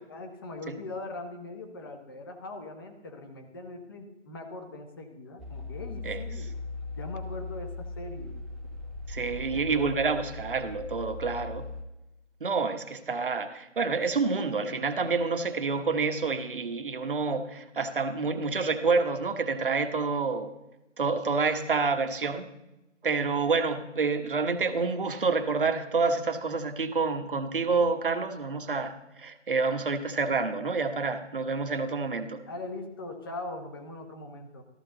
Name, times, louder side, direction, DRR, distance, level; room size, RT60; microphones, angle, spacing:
voice 1, 0.0-6.5 7.0-8.4 9.5-10.0 32.5-34.6, left 2 dB, 20° left, 4 dB, 1.1 m, -41 dB
sound 1, 5.4-11.8, left 3 dB, ahead, 0.4 m, -39 dB
voice 2, 9.1-11.7 12.4-20.5 21.0-22.5 23.0-32.4, right 4 dB, 45° right, 7 dB, 1.2 m, -28 dB
14.0 x 14.0 x 3.9 m, 0.95 s
figure-of-eight pair, 160°, 36 cm